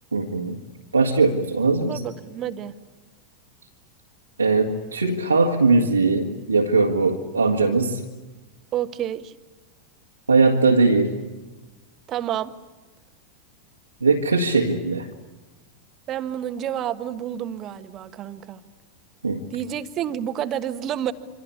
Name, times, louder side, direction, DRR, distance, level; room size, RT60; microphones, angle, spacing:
voice 1, 0.1-0.6 0.9-2.0 4.4-8.0 10.3-11.1 14.0-15.1 19.2-19.5, right 3 dB, 80° right, 0 dB, 1.9 m, -20 dB
voice 2, 1.9-2.7 8.7-9.3 12.1-12.5 16.1-18.6 19.5-21.1, right 10 dB, 30° right, 11 dB, 1.4 m, -29 dB
27.0 x 25.5 x 8.5 m, 1.2 s
figure-of-eight pair, 90°, 0 cm